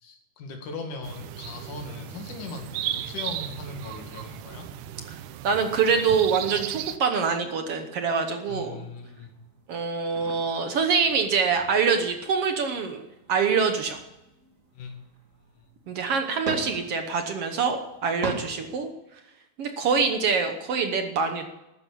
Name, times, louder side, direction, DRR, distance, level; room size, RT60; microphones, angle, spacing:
voice 1, 0.0-4.7 8.5-9.3 14.7-15.0, left 4 dB, 85° left, 3 dB, 3.7 m, -39 dB
sound 1, 1.0-7.0, right 12 dB, 85° right, 2.2 m, -35 dB
sound 2, 2.6-18.4, right 3 dB, 30° right, 2.2 m, -44 dB
voice 2, 5.4-8.9 9.7-13.0 13.3-14.0 15.9-18.9 19.6-21.5, right 5 dB, 60° right, 6 dB, 1.7 m, -25 dB
13.5 x 9.6 x 8.5 m, 0.94 s
omnidirectional pair, 3.5 m